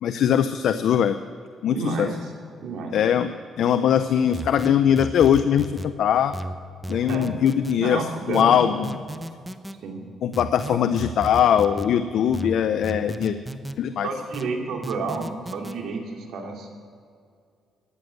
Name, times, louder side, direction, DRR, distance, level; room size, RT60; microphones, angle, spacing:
voice 1, 0.0-1.2 1.6-2.1 2.9-3.3 3.6-6.3 6.9-8.9 10.2-13.4 13.8-14.1, left 9 dB, 70° left, 10 dB, 0.6 m, -21 dB
voice 2, 1.7-2.3 2.6-3.0 7.1-7.3 7.8-8.5 9.8-10.0 10.7-10.8 14.0-16.7, right 4 dB, 75° right, 2 dB, 2.5 m, -30 dB
sound 1, 4.3-5.9 6.3-7.8 8.3-9.8 10.3-11.9 12.3-13.8 14.3-15.8, right 1 dB, 5° right, 0.8 m, -34 dB
13.5 x 9.7 x 7.8 m, 2.3 s
cardioid pair, 90°, 0 cm